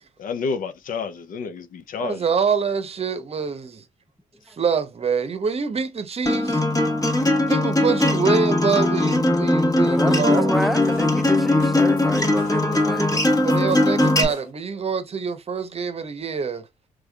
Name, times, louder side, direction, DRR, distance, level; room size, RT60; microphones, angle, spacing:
voice 1, 0.2-2.3, left 5 dB, 65° left, 0.6 m, -30 dB
voice 2, 2.0-3.8 4.5-6.6 7.5-10.7 13.4-16.7, right 6 dB, 40° right, 0.8 m, -25 dB
Acoustic guitar, 6.3-14.2, left 2 dB, 25° left, 1.4 m, -20 dB
voice 3, 9.8-13.2 13.8-13.9, equal, ahead, 0.5 m, -29 dB
sound 1, 10.8-14.5, left 4 dB, 85° left, 1.8 m, -43 dB
3.5 x 3.3 x 2.3 m
supercardioid pair, 60°, 15 cm